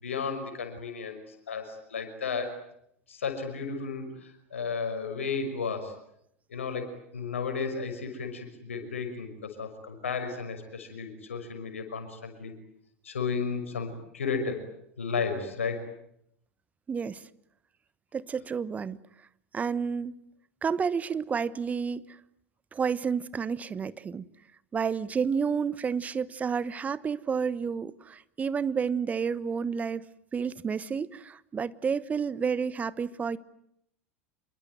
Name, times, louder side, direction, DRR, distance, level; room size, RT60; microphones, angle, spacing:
voice 1, 0.0-2.6 3.1-6.0 6.5-12.5 13.0-14.6 15.0-15.8, left 5 dB, 75° left, 6.0 m, -33 dB
voice 2, 16.9-17.2 18.1-19.0 19.5-20.1 20.6-22.0 22.7-24.2 24.7-30.0 30.3-33.4, right 6 dB, 20° right, 1.2 m, -30 dB
27.0 x 23.0 x 9.4 m
figure-of-eight pair, 85°, 7 cm